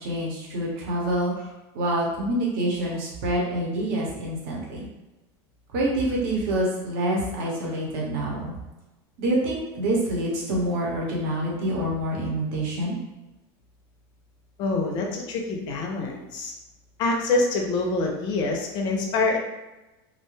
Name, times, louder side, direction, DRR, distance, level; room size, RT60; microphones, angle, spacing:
voice 1, 0.0-1.5 1.7-4.9 5.7-8.5 9.2-13.0, right 1 dB, 60° right, -3 dB, 0.9 m, -26 dB
voice 2, 14.6-16.5 17.0-19.4, left 3 dB, 35° left, 1 dB, 0.5 m, -25 dB
2.5 x 2.1 x 3.1 m, 1.1 s
supercardioid pair, 165°, 13 cm